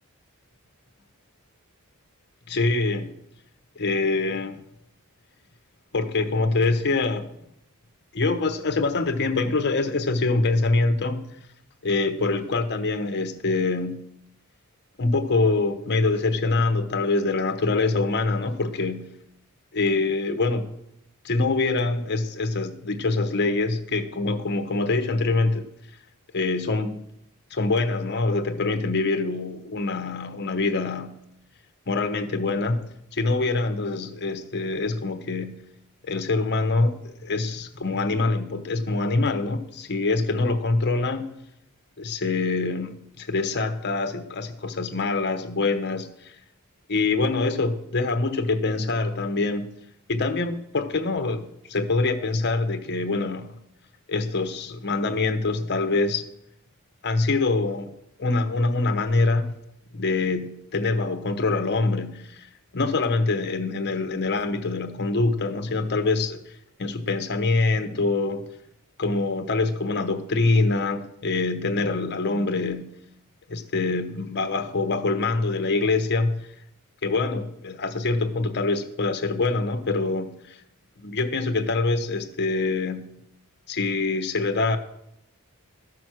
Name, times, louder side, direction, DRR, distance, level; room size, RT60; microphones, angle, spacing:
voice 1, 2.5-3.1 3.8-4.6 5.9-7.3 8.1-11.2 11.8-14.0 15.0-19.1 19.7-20.7 21.2-25.6 26.3-27.0 27.5-31.1 31.9-32.9 33.1-35.5 36.0-41.3 42.0-46.3 46.9-49.7 50.1-53.5 54.1-56.3 57.0-57.9 58.2-59.5 59.9-66.4 66.8-68.4 69.0-72.8 73.5-76.4 77.0-80.6 81.0-83.1 83.7-84.8, left 3 dB, 50° left, 1.0 m, -25 dB
13.0 x 6.1 x 6.2 m
head